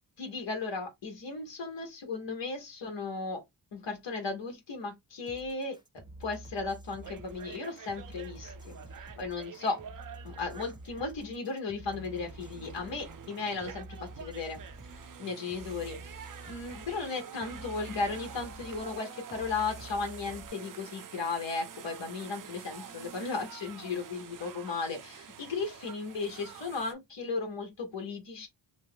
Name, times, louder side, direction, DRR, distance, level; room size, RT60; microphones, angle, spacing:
voice 1, 0.2-3.4 3.7-5.8 6.2-9.8 10.2-14.6 15.2-16.2 16.5-28.5, left 4 dB, 80° left, 1.0 m, -36 dB
sound 1, 5.3-20.5, right 1 dB, 10° right, 0.7 m, -49 dB
sound 2, 7.0-11.4 11.8-26.9, right 7 dB, 50° right, 0.5 m, -48 dB
2.9 x 2.2 x 3.4 m
cardioid pair, 80°, 44 cm